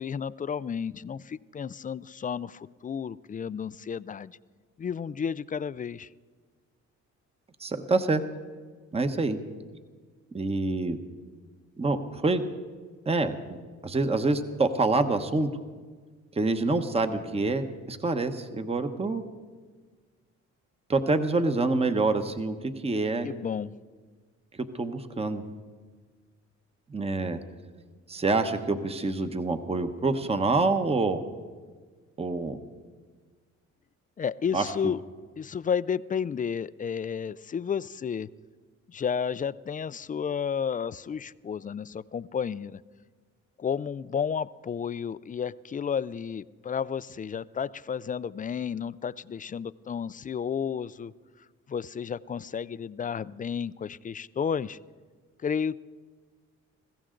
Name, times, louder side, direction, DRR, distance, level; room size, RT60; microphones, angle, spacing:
voice 1, 0.0-4.4 4.8-6.1 23.2-23.7 34.2-35.0 35.4-38.3 38.9-42.8 43.6-51.1 51.7-54.8 55.4-55.8, left 7 dB, 30° left, 17 dB, 0.4 m, -32 dB
voice 2, 7.6-8.2 8.9-9.4 10.3-11.0 11.8-12.4 13.1-13.3 13.8-15.5 16.3-19.2 20.9-23.3 24.7-25.4 26.9-27.4 28.1-31.2 32.2-32.6 34.5-34.6, right 3 dB, 20° right, 8 dB, 1.0 m, -26 dB
21.5 x 16.0 x 3.8 m, 1.5 s
cardioid pair, 90°, 30 cm